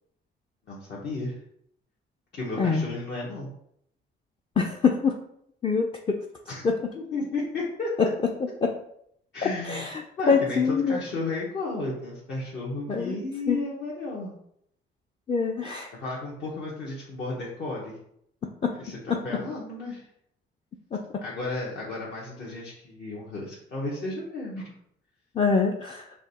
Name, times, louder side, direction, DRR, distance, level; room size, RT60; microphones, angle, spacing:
voice 1, 0.7-1.4 2.3-3.5 6.5-6.6 6.9-7.9 9.3-14.3 15.9-17.9 18.8-20.0 21.2-24.7, left 2 dB, 60° left, -5 dB, 1.1 m, -33 dB
voice 2, 4.6-5.2 5.6-6.2 6.6-6.7 8.0-8.1 8.6-8.7 9.7-9.9 10.3-11.0 12.9-13.1 13.5-13.6 15.3-15.9 18.6-18.7 19.1-19.2 20.9-21.0 25.4-26.0, left 5 dB, 25° left, 2 dB, 0.4 m, -24 dB
4.8 x 2.3 x 4.1 m, 0.72 s
cardioid pair, 90°, 20 cm